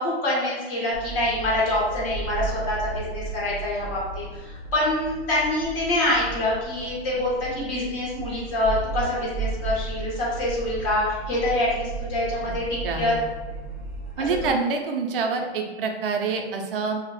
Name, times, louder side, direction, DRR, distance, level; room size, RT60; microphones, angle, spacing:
voice 1, 0.0-12.7 12.9-13.1 14.2-14.5, left 1 dB, 30° left, -6 dB, 0.9 m, -26 dB
sound 1, 0.9-14.5, right 4 dB, 5° right, 0.7 m, -35 dB
voice 2, 12.8-13.4 14.2-17.0, right 4 dB, 55° right, 3 dB, 0.5 m, -27 dB
2.7 x 2.0 x 3.0 m, 1.2 s
hypercardioid pair, 145°, 34 cm